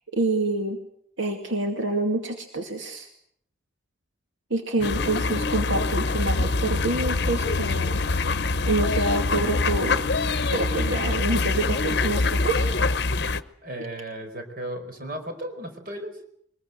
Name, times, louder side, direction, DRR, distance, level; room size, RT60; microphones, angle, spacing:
voice 1, 0.1-0.8 1.2-3.1 4.5-8.0 8.6-10.1 10.5-12.7, right 2 dB, 75° right, 4 dB, 2.5 m, -27 dB
sound 1, 4.8-13.4, left 3 dB, 55° left, 0.9 m, -24 dB
voice 2, 13.6-16.2, right 1 dB, 45° right, 5 dB, 4.7 m, -35 dB
23.0 x 21.0 x 8.0 m, 0.67 s
head